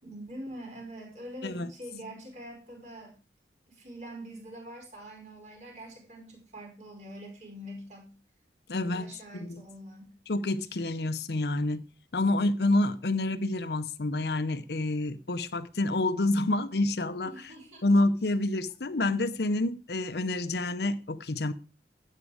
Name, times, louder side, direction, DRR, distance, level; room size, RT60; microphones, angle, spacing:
voice 1, 0.0-3.1 3.7-8.1 8.9-10.1 17.2-18.0, right 1 dB, 40° right, 5.1 m, -44 dB
voice 2, 8.7-9.6 10.3-11.9 12.1-17.3 17.8-21.5, left 2 dB, 70° left, 0.8 m, -28 dB
12.5 x 8.5 x 4.9 m
head